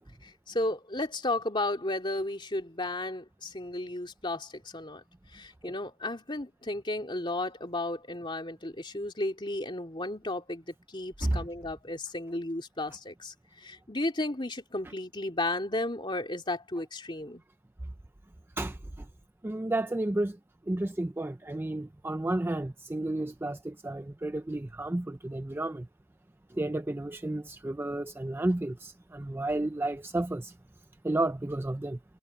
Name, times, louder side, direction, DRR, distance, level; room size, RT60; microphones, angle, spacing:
voice 1, 0.2-5.0 5.3-17.4, left 2 dB, 20° left, 3.0 m, -34 dB
voice 2, 18.6-19.1 19.4-20.4 20.7-25.9 26.5-30.5 31.0-32.0, right 1 dB, 10° right, 0.3 m, -32 dB
head